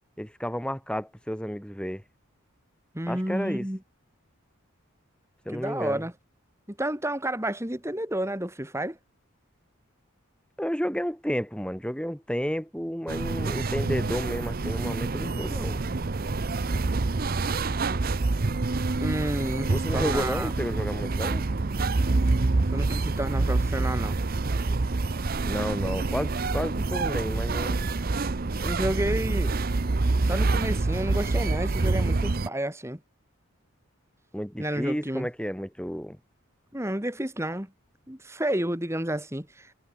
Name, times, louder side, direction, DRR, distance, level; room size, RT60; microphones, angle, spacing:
voice 1, 0.2-2.0 3.1-3.7 5.4-6.0 10.6-15.8 19.6-21.5 25.4-27.8 34.3-36.2, equal, 5° left, 7.9 m, -31 dB
voice 2, 2.9-3.8 5.5-6.1 6.7-9.0 19.0-20.5 22.7-24.2 28.6-29.6 30.2-33.0 34.6-35.3 36.7-37.7 38.1-39.7, right 1 dB, 15° right, 2.5 m, -30 dB
sound 1, 13.1-32.5, right 3 dB, 45° right, 0.7 m, -27 dB
head